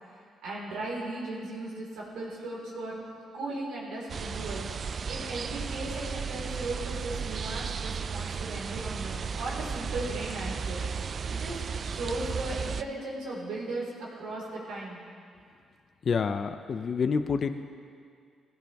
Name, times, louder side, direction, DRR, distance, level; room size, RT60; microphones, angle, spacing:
voice 1, 0.4-3.0 3.3-4.6 5.1-10.8 11.3-13.9 14.2-15.0, right 2 dB, 85° right, -5 dB, 4.5 m, -37 dB
sound 1, 4.1-12.8, right 6 dB, 45° right, 0.4 m, -34 dB
voice 2, 16.0-17.6, left 5 dB, 50° left, 8 dB, 0.6 m, -28 dB
17.0 x 16.0 x 3.5 m, 2.2 s
cardioid pair, 90°, 0 cm